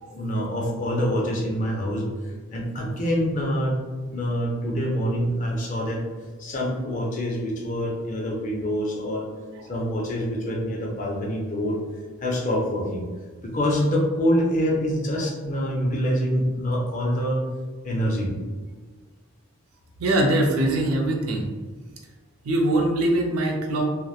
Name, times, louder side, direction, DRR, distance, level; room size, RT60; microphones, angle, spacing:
voice 1, 0.1-2.0 2.5-3.8 4.1-6.0 6.4-9.3 9.7-11.8 12.2-13.1 13.4-17.4 17.8-18.3, equal, 35° left, -2 dB, 0.5 m, -25 dB
voice 2, 20.0-21.5 22.4-23.8, right 1 dB, 90° right, 1 dB, 0.5 m, -22 dB
2.8 x 2.0 x 2.3 m, 1.4 s
head